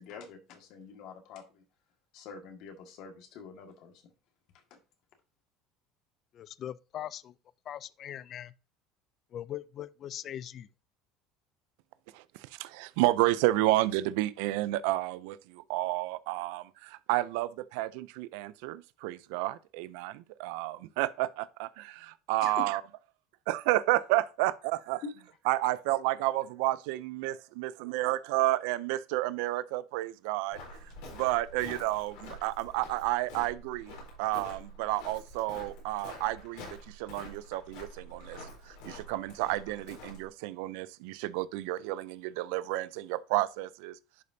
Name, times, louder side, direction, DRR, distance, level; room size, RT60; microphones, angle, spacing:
voice 1, 0.0-1.6 2.1-3.9 4.7-4.8 22.4-22.5 25.0-25.1, left 5 dB, 60° left, 1.8 m, -46 dB
voice 2, 6.3-7.3 7.7-8.5 9.3-10.7, left 11 dB, 40° left, 0.3 m, -40 dB
voice 3, 12.1-22.8 23.5-25.0 25.5-44.0, right 17 dB, 80° right, 0.4 m, -31 dB
Walk footsteps, 30.5-40.3, left 1 dB, 80° left, 4.1 m, -47 dB
10.5 x 5.1 x 2.7 m
cardioid pair, 140°, 0 cm